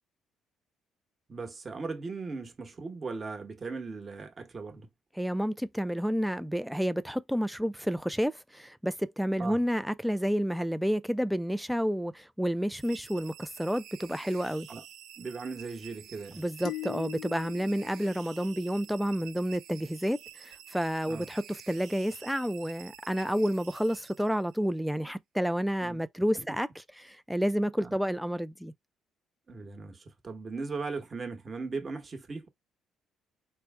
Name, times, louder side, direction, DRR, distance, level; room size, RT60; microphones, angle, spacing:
voice 1, 1.3-4.9 9.4-9.6 14.7-14.8 15.2-16.4 21.0-21.3 25.8-26.0 26.3-26.6 27.8-27.9 29.5-32.5, right 4 dB, 35° right, 1.1 m, -38 dB
voice 2, 5.1-14.7 16.3-26.7 27.0-28.7, equal, ahead, 0.4 m, -30 dB
sound 1, 12.8-24.7, right 10 dB, 75° right, 0.7 m, -50 dB
sound 2, 16.6-19.1, left 17 dB, 75° left, 0.3 m, -42 dB
4.4 x 2.1 x 3.5 m
cardioid pair, 90°, 0 cm